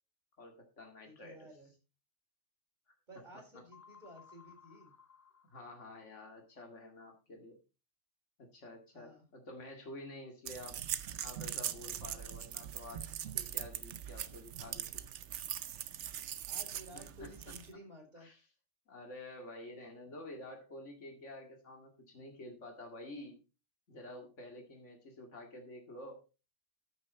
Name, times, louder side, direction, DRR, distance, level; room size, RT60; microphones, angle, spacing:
voice 1, 0.4-1.5 5.5-7.6 8.4-10.8 11.2-13.1 13.3-14.9 16.9-17.4 18.2-18.4 18.9-23.4 23.9-26.2, left 1 dB, 90° left, 2 dB, 2.4 m, -49 dB
voice 2, 1.0-1.7 3.1-4.9 8.9-9.2 16.4-18.3, equal, 40° right, 0 dB, 4.7 m, -54 dB
sound 1, 3.7-6.3, left 6 dB, 25° left, 0.4 m, -60 dB
sound 2, 10.4-17.7, right 10 dB, 75° right, 1.0 m, -41 dB
13.5 x 6.6 x 4.1 m, 0.31 s
omnidirectional pair, 1.2 m